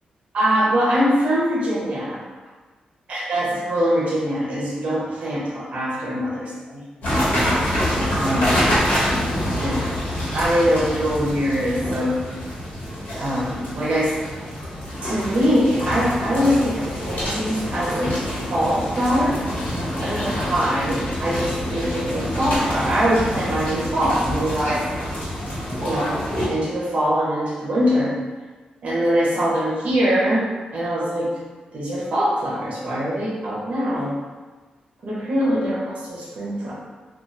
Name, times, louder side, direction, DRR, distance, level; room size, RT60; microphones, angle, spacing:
voice 1, 0.3-2.2 3.1-6.8 8.2-8.7 9.6-9.8 10.3-12.2 13.2-14.1 15.0-19.4 20.0-24.8 25.8-26.2 26.5-28.1 28.8-31.3 31.7-34.1 35.0-36.8, equal, 50° right, -6 dB, 0.8 m, -23 dB
sound 1, 7.0-26.4, equal, 85° left, 1.3 m, -26 dB
2.8 x 2.4 x 2.5 m, 1.4 s
wide cardioid pair, 160°, 3 cm